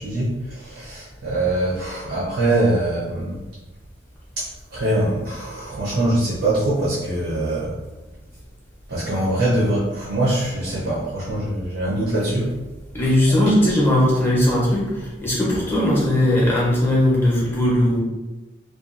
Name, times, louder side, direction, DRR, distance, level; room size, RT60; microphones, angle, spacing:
voice 1, 0.0-3.4 4.4-7.7 8.9-12.6, right 1 dB, 75° right, -7 dB, 0.7 m, -23 dB
voice 2, 12.9-18.0, left 1 dB, 10° left, -7 dB, 0.7 m, -18 dB
2.7 x 2.3 x 2.5 m, 1.1 s
head